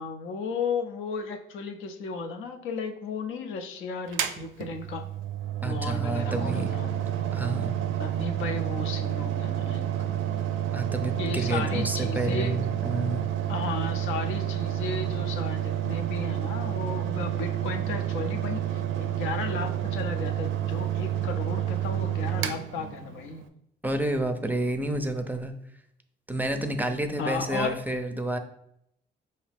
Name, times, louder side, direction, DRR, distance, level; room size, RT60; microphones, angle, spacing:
voice 1, 0.0-5.1 5.6-6.9 8.0-9.8 11.2-12.6 13.5-23.4 27.2-27.8, left 4 dB, 85° left, 5 dB, 0.6 m, -34 dB
Mechanical fan, 4.1-23.5, right 11 dB, 80° right, 0.4 m, -29 dB
voice 2, 5.6-6.8 7.3-7.7 10.7-13.2 23.8-25.5 26.3-28.4, right 1 dB, 10° right, 7 dB, 0.4 m, -29 dB
4.9 x 2.7 x 3.4 m, 0.75 s
cardioid pair, 90°, 20 cm